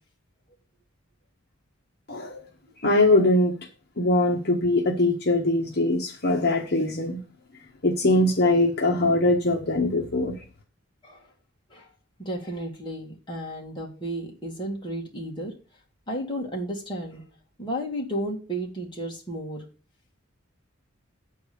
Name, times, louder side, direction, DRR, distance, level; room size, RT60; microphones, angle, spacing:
voice 1, 2.1-2.4 2.8-3.5 4.0-7.2 7.8-10.3, left 2 dB, 55° left, 0 dB, 1.4 m, -22 dB
voice 2, 12.2-15.5 16.1-17.2 17.6-19.6, right 1 dB, 25° left, -2 dB, 2.3 m, -33 dB
8.4 x 4.6 x 7.0 m, 0.34 s
head